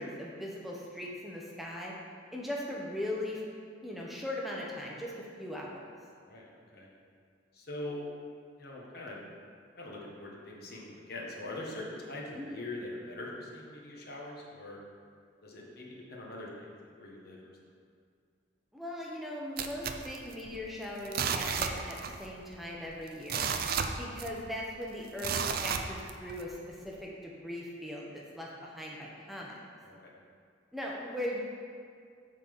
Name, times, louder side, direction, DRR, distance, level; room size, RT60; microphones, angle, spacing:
voice 1, 0.0-1.9 2.3-3.4 3.8-5.1 5.4-5.9 12.3-12.6 18.7-23.5 24.0-29.6 30.7-31.4, left 1 dB, ahead, -4 dB, 0.8 m, -39 dB
voice 2, 6.2-6.9 7.5-8.0 8.6-9.2 9.8-14.8 15.4-16.7 17.0-17.4 29.8-30.1, left 1 dB, 55° left, -3 dB, 1.4 m, -42 dB
sound 1, 19.6-20.7 21.0-22.3 22.5-22.6 23.1-24.5 25.2-26.4 26.9-27.0, right 6 dB, 55° right, 0.5 m, -33 dB
8.2 x 4.0 x 7.0 m, 2.2 s
head